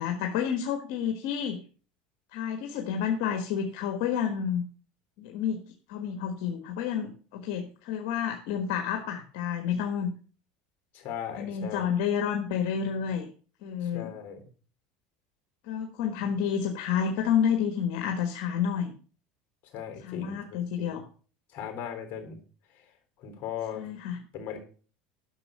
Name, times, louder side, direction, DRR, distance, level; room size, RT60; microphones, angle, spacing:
voice 1, 0.0-1.6 2.3-4.6 5.2-5.6 5.9-10.1 11.3-13.3 13.6-14.1 15.6-18.9 20.0-21.1 23.7-24.2, left 8 dB, 70° left, 4 dB, 1.4 m, -30 dB
voice 2, 10.9-11.9 13.8-14.4 19.7-21.0 21.5-22.4 23.2-23.8 24.3-24.6, left 8 dB, 50° left, 5 dB, 3.6 m, -38 dB
11.0 x 6.5 x 6.3 m, 0.40 s
supercardioid pair, 120°, 4 cm